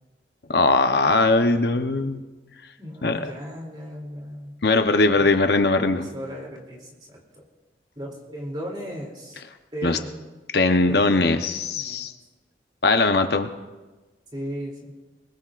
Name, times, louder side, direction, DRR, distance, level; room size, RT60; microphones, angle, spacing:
voice 1, 0.5-2.2 3.0-3.3 4.6-6.1 9.8-10.0 10.5-12.1 12.8-13.5, left 3 dB, 65° left, 7 dB, 0.9 m, -20 dB
voice 2, 2.8-4.5 5.1-5.3 5.9-7.2 8.0-9.4 9.7-10.2 10.9-11.2 11.8-12.1 14.3-14.9, equal, 25° right, -1 dB, 3.0 m, -36 dB
22.0 x 21.0 x 2.5 m, 1.2 s
head